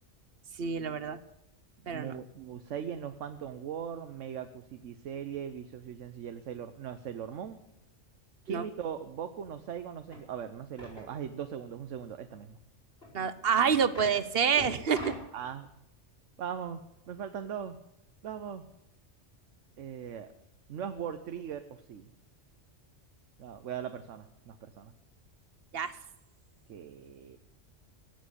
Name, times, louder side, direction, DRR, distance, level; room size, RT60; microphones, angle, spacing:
voice 1, 0.6-1.2 1.9-2.1 8.5-8.6 13.1-15.1 25.7-25.9, right 7 dB, 55° right, 14 dB, 1.1 m, -27 dB
voice 2, 1.9-7.6 8.4-12.6 15.3-15.7 16.4-16.8 17.1-17.8 18.2-18.6 19.8-20.3 20.7-22.1 23.4-24.9 26.7-27.4, right 8 dB, 85° right, 9 dB, 1.2 m, -39 dB
sound 1, 10.1-10.2 10.8-11.1 13.0-13.1 13.7-14.2 14.6-15.3, left 1 dB, 50° left, 6.0 m, -42 dB
16.5 x 7.6 x 9.9 m, 0.88 s
omnidirectional pair, 1.2 m